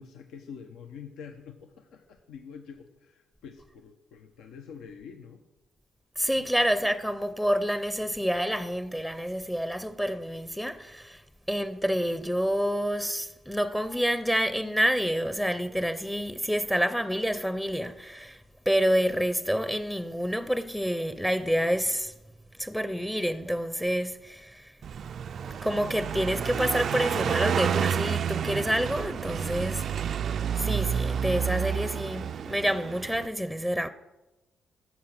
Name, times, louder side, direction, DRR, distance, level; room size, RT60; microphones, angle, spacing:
voice 1, 0.0-5.4 6.3-6.5, left 6 dB, 85° left, 0.9 m, -46 dB
voice 2, 6.2-11.2 11.5-18.4 18.7-22.1 22.6-24.7 25.4-30.2 30.5-33.9, equal, 5° left, 0.6 m, -28 dB
Car passing by, 24.8-33.3, right 8 dB, 60° right, 0.4 m, -30 dB
13.0 x 7.4 x 6.0 m
cardioid pair, 90°, 0 cm